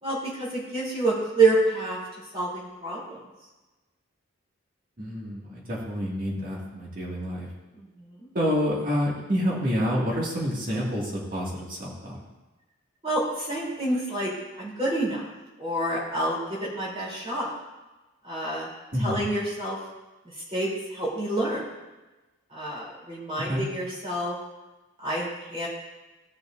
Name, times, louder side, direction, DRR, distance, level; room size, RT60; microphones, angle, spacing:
voice 1, 0.0-2.0 2.3-3.2 7.8-7.9 8.2-8.3 13.0-14.3 14.6-15.3 15.6-17.5 18.2-18.7 19.0-19.8 20.5-21.7 22.5-24.4 25.0-25.7, right 2 dB, 30° right, -5 dB, 3.4 m, -27 dB
voice 2, 5.0-7.5 8.3-12.2 18.9-19.2 23.4-23.6, equal, 45° right, -4 dB, 2.2 m, -28 dB
16.5 x 6.8 x 2.6 m, 1.1 s
head